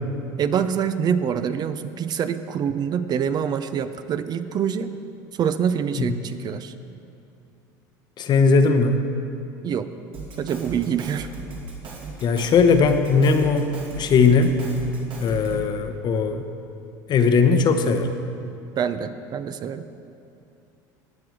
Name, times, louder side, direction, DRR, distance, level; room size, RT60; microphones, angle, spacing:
voice 1, 0.4-4.9 5.3-6.7 9.6-9.9 10.4-11.3 18.8-19.8, right 8 dB, 40° right, 11 dB, 0.5 m, -25 dB
voice 2, 8.2-9.0 12.2-14.6 15.2-16.4 17.1-18.1, left 4 dB, 45° left, 8 dB, 0.9 m, -19 dB
Drum kit, 10.1-15.7, right 3 dB, 55° right, 2.5 m, -37 dB
17.5 x 6.1 x 4.7 m, 2.6 s
supercardioid pair, 90°, 10 cm